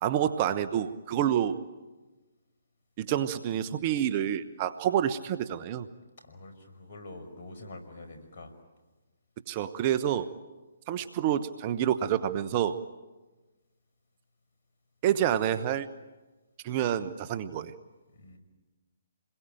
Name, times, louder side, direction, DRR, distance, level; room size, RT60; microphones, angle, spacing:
voice 1, 0.0-1.6 3.0-5.9 9.5-10.3 10.9-12.8 15.0-15.9 16.6-17.7, right 10 dB, 35° right, 12 dB, 1.2 m, -28 dB
voice 2, 6.2-8.6 18.1-18.4, left 2 dB, 55° left, 5 dB, 5.6 m, -46 dB
28.0 x 21.5 x 9.2 m, 1.2 s
figure-of-eight pair, 140°, 0 cm